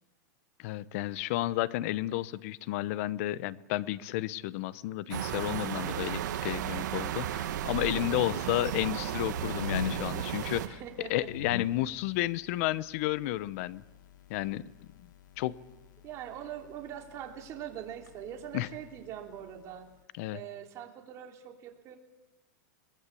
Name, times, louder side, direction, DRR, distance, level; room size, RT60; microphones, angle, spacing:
voice 1, 0.6-10.6 11.0-13.8 14.3-14.6 15.4-15.5 18.5-18.7 20.2-20.4, left 16 dB, 50° left, 18 dB, 0.9 m, -32 dB
sound 1, 5.1-10.7, right 11 dB, 70° right, 1.8 m, -34 dB
sound 2, 7.8-20.0, left 7 dB, 75° left, 1.4 m, -45 dB
voice 2, 10.6-11.3 15.4-15.5 16.0-19.9 20.3-22.0, right 10 dB, 30° right, 3 dB, 3.2 m, -43 dB
22.5 x 21.0 x 8.5 m, 1.1 s
supercardioid pair, 155°, 10 cm